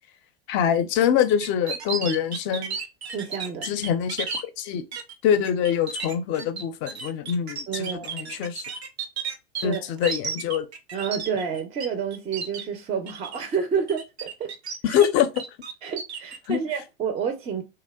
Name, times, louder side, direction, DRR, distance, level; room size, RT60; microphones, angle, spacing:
voice 1, 0.5-2.8 3.6-4.3 4.6-4.8 5.2-8.6 9.6-10.7 14.8-15.4 16.5-16.6, left 9 dB, 40° left, 0.5 m, -24 dB
sound 1, 1.4-4.4 4.9-5.1 5.4-11.9 12.1-12.6 13.1-13.5 13.9-15.1 15.4-16.4, right 5 dB, 90° right, 0.5 m, -33 dB
voice 2, 3.1-3.7 7.7-8.5 9.6-9.8 10.9-14.5 14.9-15.0 15.8-17.6, right 6 dB, 20° right, 0.4 m, -29 dB
2.7 x 2.1 x 2.2 m
hypercardioid pair, 95°, 31 cm